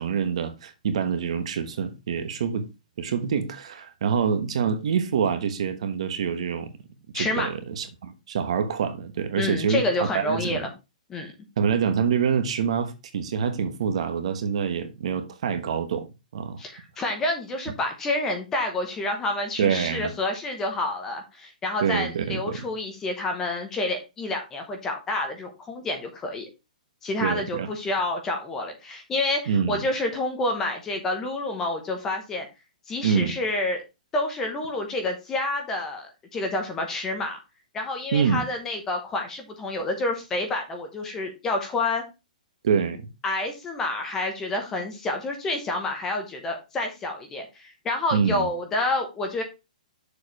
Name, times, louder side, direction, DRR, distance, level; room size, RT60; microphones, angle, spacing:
voice 1, 0.0-2.7 3.0-6.7 7.1-9.8 10.1-10.6 11.6-16.6 19.6-20.1 21.8-22.6 27.2-27.7 29.5-29.8 33.0-33.3 38.1-38.4 42.6-43.1 48.1-48.5, right 7 dB, 45° right, 1.1 m, -26 dB
voice 2, 7.1-7.5 9.4-10.7 11.1-11.3 16.6-26.5 27.0-32.5 32.9-33.8 34.1-37.4 37.7-42.0 43.2-49.4, left 2 dB, 10° left, 0.9 m, -28 dB
6.8 x 4.7 x 4.7 m
hypercardioid pair, 175°, 4 cm